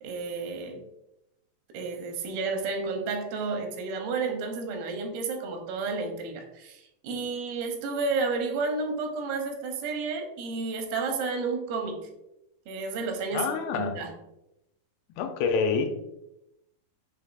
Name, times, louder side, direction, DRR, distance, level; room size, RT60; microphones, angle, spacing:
voice 1, 0.0-0.8 1.7-12.1 12.7-14.1, right 4 dB, 85° right, 4 dB, 2.5 m, -31 dB
voice 2, 13.3-14.0 15.1-16.0, left 5 dB, 90° left, 5 dB, 2.5 m, -27 dB
6.8 x 3.3 x 2.4 m, 0.87 s
omnidirectional pair, 4.2 m